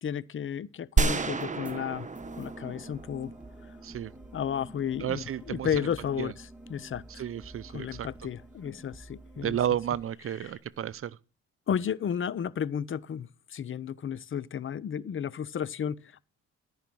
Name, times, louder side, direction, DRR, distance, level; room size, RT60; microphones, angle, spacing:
voice 1, 0.0-2.1 2.4-3.3 4.3-6.3 6.7-7.2 7.7-9.6 10.4-10.5 11.7-16.2, left 8 dB, 40° left, 0.7 m, -33 dB
sound 1, 1.0-3.9, right 4 dB, 25° right, 1.2 m, -30 dB
sound 2, 1.3-10.0, right 1 dB, 5° right, 2.2 m, -48 dB
voice 2, 5.0-5.7 6.2-6.3 7.1-8.1 9.4-11.2, right 10 dB, 45° right, 0.6 m, -32 dB
14.0 x 5.6 x 7.6 m
cardioid pair, 90°, 30 cm